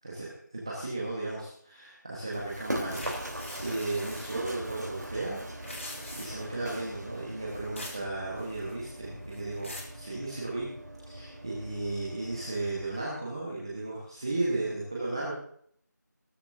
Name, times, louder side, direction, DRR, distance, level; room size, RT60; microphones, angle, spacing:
voice 1, 0.0-3.1 3.6-5.4 6.2-10.7 11.0-15.3, right 2 dB, 15° right, -6 dB, 1.3 m, -35 dB
Run, 2.3-12.9, right 1 dB, 65° right, 3.8 m, -41 dB
sound 1, 2.9-4.6 5.5-6.6 7.8-8.1 8.4-8.9 9.3-10.0, left 1 dB, 40° left, 2.6 m, -43 dB
18.5 x 13.0 x 2.7 m, 0.63 s
figure-of-eight pair, 175°, 10 cm